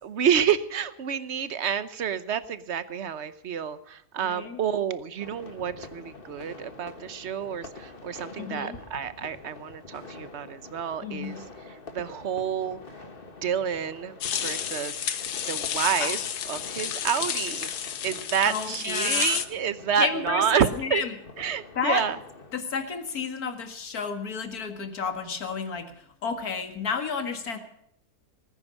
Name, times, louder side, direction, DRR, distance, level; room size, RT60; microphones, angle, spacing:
voice 1, 0.0-12.8 13.4-14.2 14.4-15.0 15.5-17.7 18.0-21.0 21.4-22.2, right 8 dB, 50° right, 14 dB, 1.1 m, -29 dB
voice 2, 4.2-4.6 8.4-8.8 11.0-11.4 18.4-19.4 20.0-21.1 21.8-22.1 22.5-27.6, left 5 dB, 70° left, 7 dB, 2.3 m, -31 dB
sound 1, 5.2-22.6, left 3 dB, 35° left, 1.7 m, -46 dB
sound 2, 14.2-19.5, left 9 dB, 90° left, 1.6 m, -31 dB
19.0 x 9.8 x 6.4 m, 0.76 s
omnidirectional pair, 1.7 m